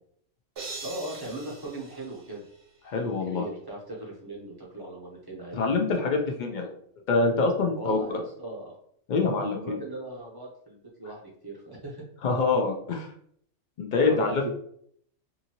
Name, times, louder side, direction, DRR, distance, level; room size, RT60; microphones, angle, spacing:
sound 1, 0.6-2.9, right 3 dB, 55° right, 1.0 m, -42 dB
voice 1, 0.8-2.4 2.9-5.6 7.8-8.8 9.5-12.0 14.1-14.5, right 1 dB, 20° right, -5 dB, 0.7 m, -38 dB
voice 2, 2.9-3.4 5.5-6.7 7.1-8.2 9.1-9.8 12.2-13.1 13.8-14.5, left 3 dB, 65° left, 2 dB, 0.4 m, -25 dB
2.7 x 2.6 x 2.8 m, 0.65 s
omnidirectional pair, 1.4 m